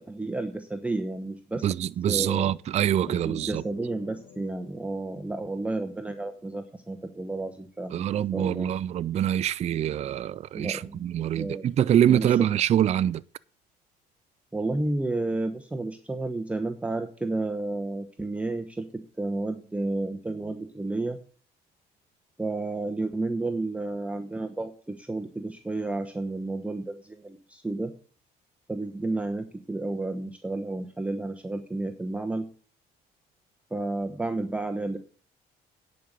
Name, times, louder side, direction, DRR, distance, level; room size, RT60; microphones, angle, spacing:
voice 1, 0.1-1.7 2.1-2.5 3.1-8.1 8.3-8.7 10.5-11.7 12.1-12.5 14.5-21.2 22.4-27.9 28.7-32.4 33.7-35.0, right 2 dB, 10° right, 0.9 m, -31 dB
voice 2, 1.6-3.6 7.9-13.2, right 10 dB, 40° right, 0.4 m, -25 dB
sound 1, 3.1-7.7, left 7 dB, 85° left, 1.7 m, -52 dB
10.5 x 5.3 x 8.1 m
cardioid pair, 110°, 17 cm